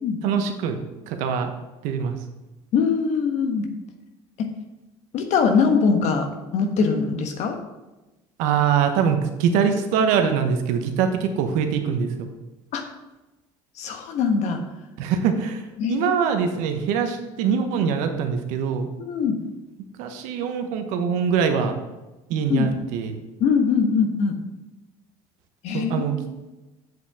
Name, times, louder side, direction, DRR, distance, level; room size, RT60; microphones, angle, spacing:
voice 1, 0.2-0.8 1.1-1.5 1.8-2.1 8.4-12.3 15.0-18.9 20.0-21.7 22.3-23.1 25.7-26.2, right 7 dB, 75° right, 6 dB, 1.1 m, -23 dB
voice 2, 2.7-3.7 4.4-4.5 5.1-7.6 12.7-12.8 13.8-14.6 15.8-16.1 19.0-19.4 22.5-22.7 23.4-24.4 25.6-26.2, left 5 dB, 60° left, 5 dB, 1.3 m, -22 dB
7.9 x 7.3 x 3.6 m, 1.0 s
supercardioid pair, 80°, 13 cm